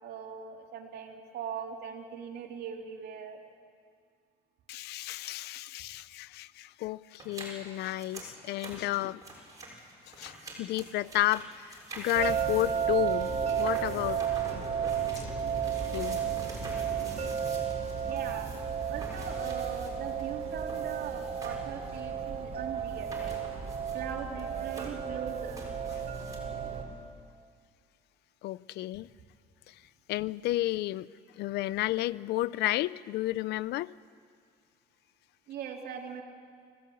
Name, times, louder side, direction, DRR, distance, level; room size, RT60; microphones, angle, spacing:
voice 1, 0.0-3.4 18.0-18.5 18.9-23.3 23.9-25.6 35.5-36.2, right 7 dB, 70° right, 2 dB, 3.2 m, -40 dB
voice 2, 4.7-9.2 10.1-14.7 15.1-15.2 15.9-16.2 25.9-26.0 28.4-29.1 29.7-29.8 30.1-31.1 31.3-33.9, left 16 dB, 75° left, 20 dB, 0.5 m, -32 dB
sound 1, 7.2-21.7 22.0-22.1 22.9-24.1 24.4-26.4, right 2 dB, 20° right, 6.8 m, -47 dB
sound 2, 12.1-26.8, right 8 dB, 40° right, 4.0 m, -33 dB
25.5 x 17.0 x 8.7 m, 2.1 s
cardioid pair, 110°, 17 cm